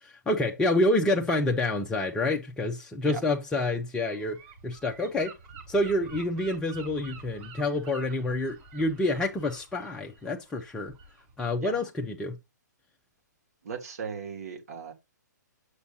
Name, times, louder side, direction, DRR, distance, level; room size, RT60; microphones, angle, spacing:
voice 1, 0.0-4.4 4.6-5.4 5.7-10.9 11.4-12.4, left 2 dB, 10° left, 0.6 m, -28 dB
Gull seagull / Wind, 4.1-11.3, right 5 dB, 40° right, 4.2 m, -48 dB
voice 2, 13.6-14.9, right 6 dB, 55° right, 2.6 m, -37 dB
8.0 x 6.5 x 2.7 m
figure-of-eight pair, 125°, 10 cm